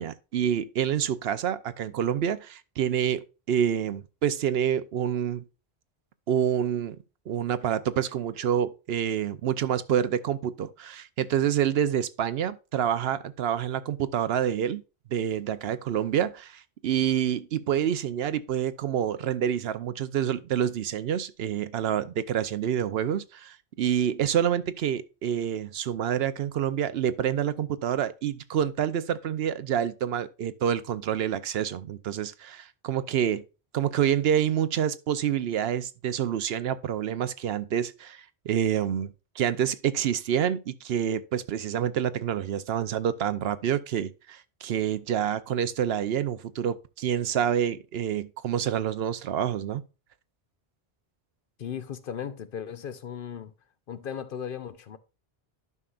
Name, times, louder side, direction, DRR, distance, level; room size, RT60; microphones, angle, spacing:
voice 1, 0.0-5.4 6.3-7.0 7.3-14.8 15.1-33.4 33.7-49.8, right 9 dB, 75° right, 0.8 m, -27 dB
voice 2, 51.6-53.5 53.9-55.0, left 8 dB, 60° left, 0.9 m, -36 dB
11.0 x 5.6 x 2.4 m
omnidirectional pair, 1.0 m